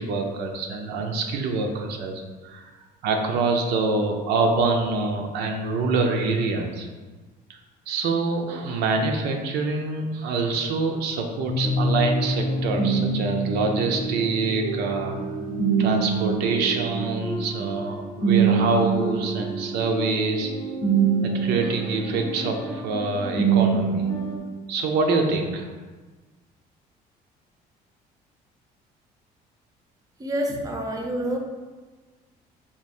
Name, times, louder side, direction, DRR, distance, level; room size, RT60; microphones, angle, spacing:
voice 1, 0.0-2.7 3.0-6.9 7.9-15.2 15.8-20.5 21.2-24.0 24.7-25.7, right 3 dB, 80° right, 3 dB, 0.5 m, -25 dB
sound 1, 11.5-24.4, right 4 dB, 30° left, 0.6 m, -25 dB
voice 2, 30.2-31.4, right 1 dB, 20° right, 2 dB, 0.5 m, -27 dB
3.5 x 2.4 x 4.2 m, 1.3 s
cardioid pair, 110°, 17 cm